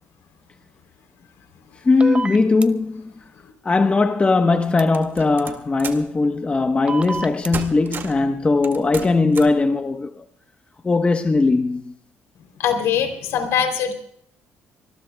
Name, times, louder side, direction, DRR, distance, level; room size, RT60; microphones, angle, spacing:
voice 1, 1.8-3.1 3.6-10.2 10.8-11.9, left 3 dB, 25° left, 1.1 m, -19 dB
sound 1, 2.0-2.7 4.8-4.9 6.9-7.5, right 4 dB, 25° right, 0.8 m, -27 dB
sound 2, 4.9-6.1 7.0-7.3 7.5-8.3 8.6-9.6, right 6 dB, 50° right, 2.1 m, -33 dB
voice 2, 12.6-13.9, left 8 dB, 75° left, 3.2 m, -22 dB
24.5 x 21.0 x 2.3 m
cardioid pair, 90°, 5 cm